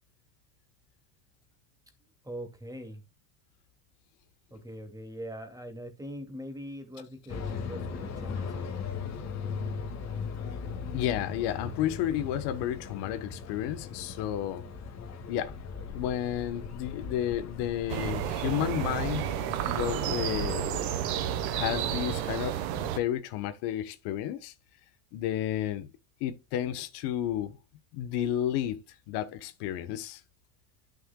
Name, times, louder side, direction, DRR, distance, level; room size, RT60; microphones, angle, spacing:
voice 1, 2.0-3.0 4.5-8.7, equal, 10° right, 2.3 m, -42 dB
sound 1, 7.3-21.8, left 5 dB, 40° left, 2.0 m, -39 dB
voice 2, 10.9-14.6 15.3-15.6 15.9-19.2 19.6-20.7 21.5-24.5 25.1-25.9 26.2-27.6 27.9-28.8 29.1-30.2, left 11 dB, 65° left, 1.2 m, -32 dB
sound 2, 17.9-23.0, right 11 dB, 75° right, 1.2 m, -31 dB
11.0 x 6.5 x 2.3 m
supercardioid pair, 120°, 43 cm